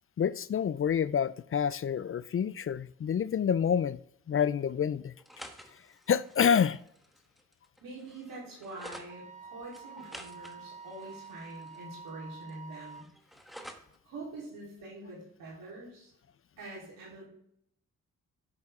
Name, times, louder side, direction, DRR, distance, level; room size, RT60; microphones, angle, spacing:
voice 1, 0.2-4.0 4.3-5.1 6.1-6.8, left 7 dB, 40° left, 0.4 m, -28 dB
sound 1, 5.2-9.1 9.7-12.1 12.4-14.0, equal, ahead, 1.3 m, -50 dB
voice 2, 7.8-13.1 14.0-16.1 16.6-17.2, right 2 dB, 90° right, 3.9 m, -45 dB
Wind instrument woodwind instrument, 9.1-13.1, right 5 dB, 20° right, 0.6 m, -48 dB
12.0 x 6.5 x 3.7 m
cardioid pair, 50°, 33 cm